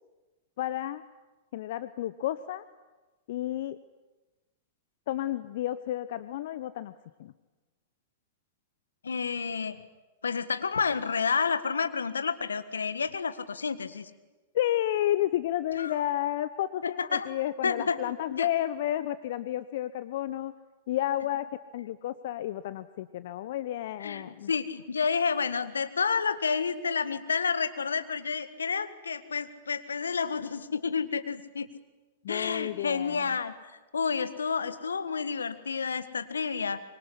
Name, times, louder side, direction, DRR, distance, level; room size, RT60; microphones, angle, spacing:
voice 1, 0.6-1.0 1.5-2.6 3.3-3.8 5.1-6.9 7.2-7.3 14.5-20.5 20.9-21.5 21.7-24.5 32.2-33.3, left 13 dB, 60° left, 14 dB, 0.9 m, -31 dB
voice 2, 9.0-9.8 10.2-14.1 15.8-15.9 16.8-17.3 17.6-18.0 18.4-18.5 24.0-31.7 32.3-33.5 33.9-36.8, left 5 dB, 80° left, 11 dB, 1.7 m, -30 dB
25.0 x 23.5 x 10.0 m, 1.2 s
figure-of-eight pair, 100°, 0 cm